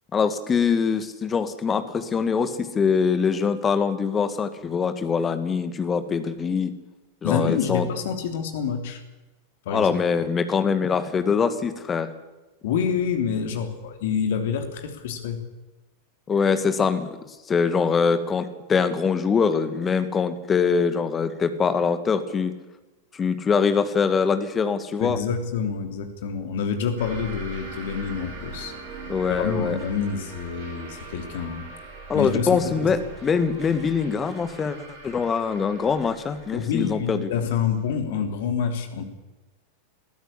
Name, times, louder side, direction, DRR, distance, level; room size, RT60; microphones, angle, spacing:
voice 1, 0.1-6.7 7.2-7.9 9.7-12.1 16.3-17.2 17.5-22.5 23.1-25.2 29.1-29.8 32.1-34.8 35.0-37.3, left 5 dB, 20° left, 10 dB, 2.0 m, -23 dB
voice 2, 7.2-9.0 9.6-10.0 12.6-15.4 25.0-28.7 29.3-31.7 32.1-32.9 36.5-39.0, left 7 dB, 55° left, 6 dB, 3.3 m, -27 dB
sound 1, 27.0-38.2, right 3 dB, 50° right, 7.9 m, -41 dB
21.0 x 14.0 x 10.0 m, 1.1 s
figure-of-eight pair, 90°, 0 cm